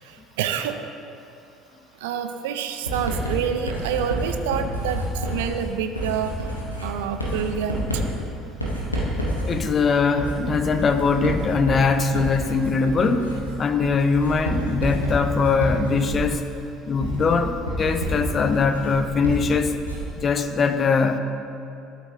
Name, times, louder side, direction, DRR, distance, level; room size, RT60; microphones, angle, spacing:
voice 1, 0.4-0.8 2.0-6.3 6.8-7.8, right 8 dB, 70° right, 7 dB, 0.4 m, -27 dB
Writing, 2.9-20.2, equal, 90° left, 0.9 m, -29 dB
voice 2, 9.4-13.3 13.6-16.4 16.9-19.7 20.2-21.2, left 4 dB, 35° left, 9 dB, 0.5 m, -21 dB
12.0 x 4.5 x 2.6 m, 2.7 s
figure-of-eight pair, 60°, 0 cm